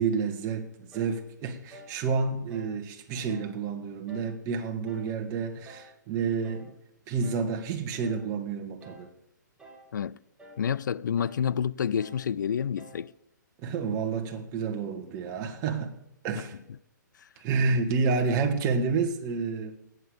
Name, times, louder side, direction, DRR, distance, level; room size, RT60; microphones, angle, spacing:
voice 1, 0.0-6.7 7.1-9.1 13.6-15.9 16.2-16.6 17.4-19.8, right 5 dB, 30° right, 1.7 m, -29 dB
sound 1, 0.9-1.2 1.7-2.0 2.5-2.8 3.3-3.6 4.1-4.4 4.9-5.2 5.7-5.9 6.4-6.7 7.2-7.5 8.0-8.3 8.8-9.1 9.6-9.9 10.4-10.7 11.2-11.5 12.0-12.3 12.8-13.1, equal, 5° right, 2.1 m, -50 dB
voice 2, 10.6-13.1 16.4-16.5 17.2-17.3, left 8 dB, 70° left, 0.5 m, -29 dB
19.0 x 8.1 x 5.2 m
hypercardioid pair, 130°, 10 cm